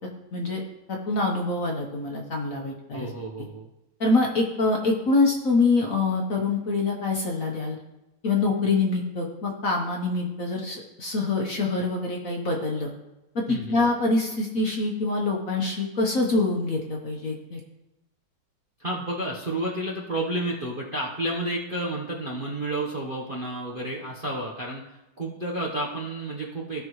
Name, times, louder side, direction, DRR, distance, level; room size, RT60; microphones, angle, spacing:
voice 1, 0.9-3.1 4.0-7.8 8.2-12.9 13.3-17.6, left 3 dB, 50° left, 0 dB, 1.2 m, -25 dB
voice 2, 2.9-3.7 13.5-13.8 18.8-24.8 25.2-26.8, right 1 dB, 40° right, -4 dB, 0.8 m, -31 dB
16.0 x 5.7 x 3.1 m, 0.95 s
omnidirectional pair, 2.4 m